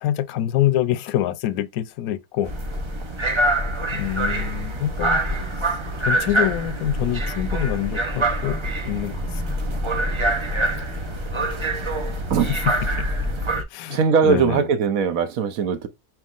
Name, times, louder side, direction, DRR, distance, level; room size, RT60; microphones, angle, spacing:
voice 1, 0.0-2.5 3.9-5.2 5.6-5.7 6.0-9.6 13.0-13.1 13.7-14.7, left 12 dB, 75° left, 1.0 m, -26 dB
sound 1, 2.4-13.6, right 1 dB, 50° right, 0.3 m, -25 dB
voice 2, 12.3-12.6 13.9-15.9, right 6 dB, 65° right, 1.1 m, -20 dB
4.5 x 3.5 x 2.4 m
omnidirectional pair, 1.6 m